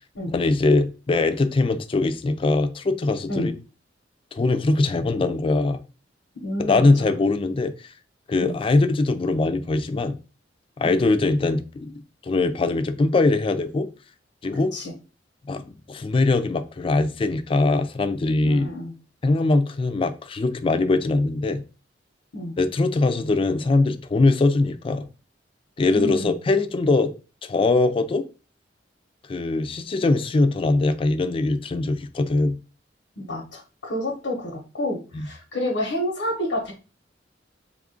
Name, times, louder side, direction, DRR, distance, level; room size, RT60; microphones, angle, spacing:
voice 1, 0.3-3.5 4.3-5.8 6.6-7.9 8.3-10.2 10.8-13.9 14.4-14.7 15.5-18.7 19.2-21.6 22.6-25.1 25.8-27.1 27.4-28.2 29.3-32.6 35.1-35.3, left 3 dB, 30° left, 0.3 m, -22 dB
voice 2, 6.3-7.1 8.4-8.6 10.8-11.0 14.5-14.9 18.4-18.9 22.3-22.6 25.9-26.4 33.2-36.7, left 1 dB, 90° left, 0.9 m, -29 dB
3.4 x 2.4 x 3.7 m
head